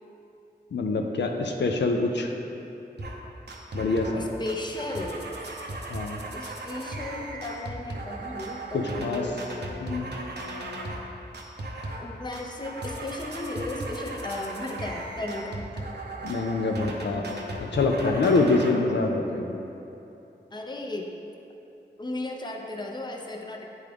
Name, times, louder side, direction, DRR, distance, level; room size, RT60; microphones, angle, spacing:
voice 1, 0.7-2.3 3.7-4.2 5.9-6.2 8.7-9.2 9.8-10.1 16.2-17.4 17.7-19.6, left 3 dB, 85° left, 2 dB, 0.5 m, -25 dB
sound 1, 3.0-3.2 3.5-4.2 4.5-11.1 11.3-12.1 12.3-18.7, right 1 dB, 70° right, 0.7 m, -37 dB
voice 2, 4.2-5.3 6.3-9.5 12.0-15.9 20.5-21.1 22.0-23.7, left 2 dB, 25° left, 1 dB, 0.5 m, -35 dB
9.2 x 3.6 x 3.4 m, 2.9 s
wide cardioid pair, 95°, 18 cm